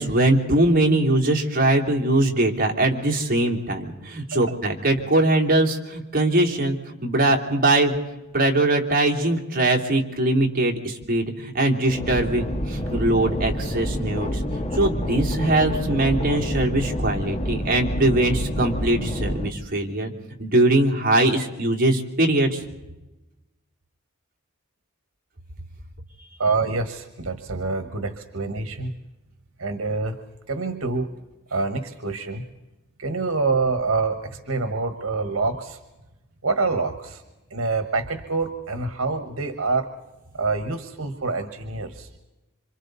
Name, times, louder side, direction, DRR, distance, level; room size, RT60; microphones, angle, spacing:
voice 1, 0.0-7.9 8.3-14.4 14.7-20.1 20.4-22.6, right 1 dB, 45° right, 1 dB, 3.3 m, -21 dB
sound 1, 11.8-19.5, equal, 30° left, 1.6 m, -28 dB
voice 2, 26.4-28.9 29.6-30.2 30.5-31.1 31.5-32.4 33.0-35.8 36.4-37.2 37.5-39.9 40.4-42.1, right 3 dB, 80° right, 8 dB, 1.5 m, -26 dB
27.5 x 26.5 x 4.1 m, 1.0 s
head